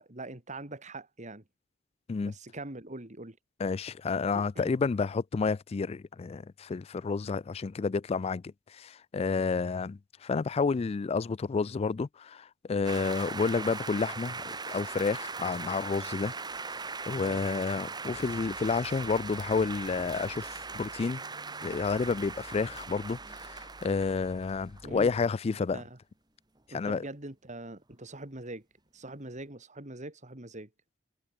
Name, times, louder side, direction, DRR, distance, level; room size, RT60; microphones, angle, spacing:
voice 1, 0.0-1.4 2.2-3.4 4.3-4.8 17.1-17.5 24.8-25.1 25.7-26.0 26.7-28.6 28.9-30.7, right 2 dB, 40° right, 2.8 m, -43 dB
voice 2, 3.6-16.3 17.1-21.2 21.6-25.8 26.7-27.0, left 4 dB, 30° left, 0.3 m, -30 dB
sound 1, 12.8-24.9, right 4 dB, 20° right, 1.8 m, -39 dB
sound 2, 18.1-25.2, equal, 75° right, 4.5 m, -55 dB
head